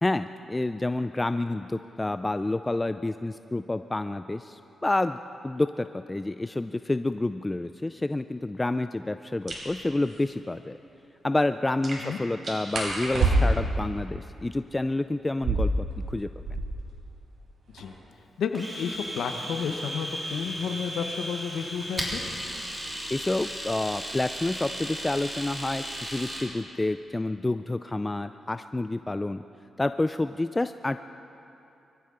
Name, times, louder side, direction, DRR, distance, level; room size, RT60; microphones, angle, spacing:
voice 1, 0.0-10.8 11.2-16.3 23.1-29.4 29.8-31.0, left 2 dB, 20° left, 10 dB, 0.3 m, -29 dB
sound 1, 9.5-9.7 11.8-13.2, right 2 dB, 45° right, 4.3 m, -39 dB
sound 2, 10.0-10.2 12.7-13.8 15.3-16.9 17.2-17.3 17.5-18.1 18.7-21.3 22.3-22.6 23.0-23.5 23.8-24.5, right 2 dB, 75° right, 3.9 m, -28 dB
voice 2, 18.4-22.2, left 6 dB, 85° left, 6 dB, 0.9 m, -31 dB
Domestic sounds home sounds, 18.5-26.5, equal, 15° right, 3.2 m, -35 dB
23.5 x 15.0 x 3.8 m, 2.8 s
cardioid pair, 85°, 0 cm